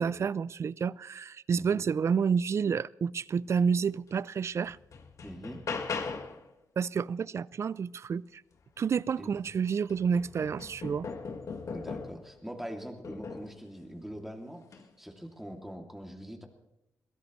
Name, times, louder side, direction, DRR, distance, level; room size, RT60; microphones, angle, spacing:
voice 1, 0.0-4.8 6.8-8.4 8.8-11.1, right 6 dB, 50° right, 0.4 m, -29 dB
voice 2, 1.5-1.9 5.2-5.6 9.2-9.3 11.7-16.5, equal, 5° right, 2.7 m, -43 dB
sound 1, 4.1-4.2 4.6-6.5 8.8-8.9 9.4-12.3 13.0-13.6 14.6-14.9, left 4 dB, 60° left, 1.6 m, -39 dB
22.5 x 16.5 x 3.2 m
cardioid pair, 85°, 6 cm